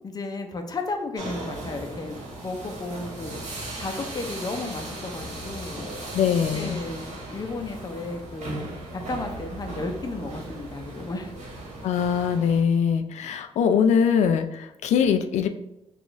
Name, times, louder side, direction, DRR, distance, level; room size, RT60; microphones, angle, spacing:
voice 1, 0.0-3.3 3.8-5.9 6.5-7.0 7.3-8.6 8.9-11.4, left 3 dB, 35° left, 5 dB, 0.6 m, -33 dB
sound 1, 1.1-12.6, right 2 dB, 75° right, 1.2 m, -37 dB
voice 2, 6.1-6.8 11.8-15.5, left 7 dB, 80° left, 8 dB, 0.4 m, -22 dB
3.9 x 2.4 x 3.1 m, 0.86 s
cardioid pair, 95°, 12 cm